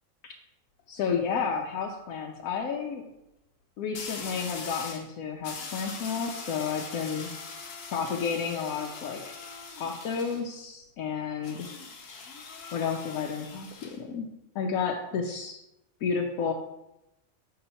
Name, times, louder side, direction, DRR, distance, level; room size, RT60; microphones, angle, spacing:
sound 1, 0.8-1.1 3.9-5.1 5.4-10.4 11.4-14.0, left 4 dB, 70° left, 1.2 m, -41 dB
voice 1, 0.9-3.0 3.8-7.3 7.9-9.3 9.8-11.7 12.7-14.3 14.5-15.6 16.0-16.5, left 6 dB, 90° left, 0 dB, 1.1 m, -31 dB
5.9 x 2.9 x 5.5 m, 0.88 s
omnidirectional pair, 1.4 m